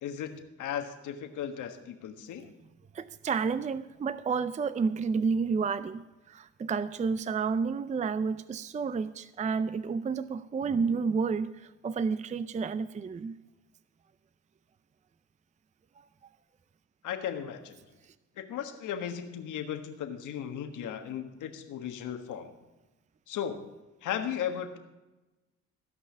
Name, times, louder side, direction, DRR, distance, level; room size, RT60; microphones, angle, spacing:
voice 1, 0.0-2.5 17.0-17.8 18.4-22.5 23.3-23.6 24.0-24.8, left 9 dB, 80° left, 6 dB, 1.5 m, -36 dB
voice 2, 2.9-13.3, right 5 dB, 25° right, 15 dB, 0.5 m, -30 dB
16.0 x 5.6 x 8.3 m, 1.1 s
cardioid pair, 90°, 30 cm